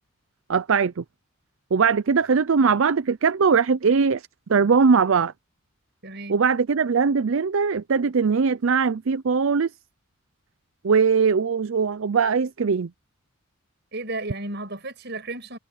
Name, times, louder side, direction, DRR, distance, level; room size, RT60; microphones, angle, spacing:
voice 1, 0.5-1.0 1.7-4.2 4.5-5.3 6.3-9.7 10.8-12.9, right 5 dB, 65° right, 0.5 m, -20 dB
voice 2, 6.0-6.4 13.9-15.6, right 2 dB, 50° right, 6.3 m, -33 dB
head